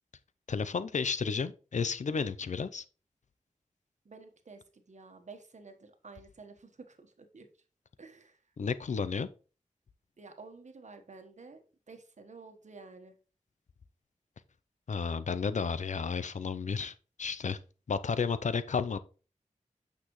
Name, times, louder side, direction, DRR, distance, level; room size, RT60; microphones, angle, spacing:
voice 1, 0.5-2.8 8.6-9.3 14.9-17.6 17.9-19.0, left 5 dB, 70° left, 0.5 m, -32 dB
voice 2, 4.0-7.5 8.0-8.4 10.2-13.2, right 4 dB, 65° right, 1.3 m, -51 dB
8.8 x 5.9 x 3.1 m
wide cardioid pair, 75°, 13 cm